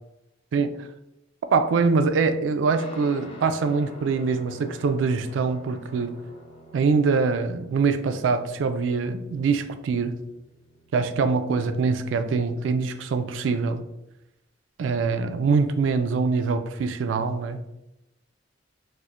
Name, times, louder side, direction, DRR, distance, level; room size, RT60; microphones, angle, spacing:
voice 1, 0.5-0.9 1.5-6.1 6.7-10.1 10.9-13.8 14.8-17.7, right 4 dB, 85° right, 9 dB, 0.3 m, -24 dB
Guitar, 2.8-12.5, equal, 30° left, 0.6 m, -48 dB
4.3 x 2.1 x 2.4 m, 0.90 s
head